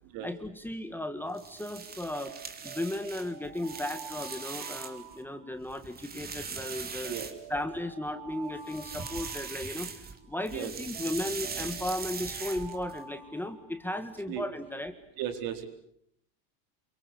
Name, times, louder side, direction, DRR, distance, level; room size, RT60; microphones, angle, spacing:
voice 1, 0.2-2.3 2.6-7.2 7.5-14.9, left 1 dB, 5° left, 8 dB, 1.6 m, -35 dB
sound 1, 1.3-5.1 5.5-7.8 8.6-10.2 10.4-13.0, right 5 dB, 25° right, 3.0 m, -40 dB
Alarm, 2.2-5.9 6.5-10.3 10.9-14.2, right 7 dB, 80° right, 6.4 m, -48 dB
voice 2, 7.0-7.4 10.5-10.7 14.3-14.4 15.2-15.7, right 10 dB, 60° right, 7 dB, 4.6 m, -35 dB
28.5 x 24.0 x 8.5 m, 0.72 s
cardioid pair, 155°, 40 cm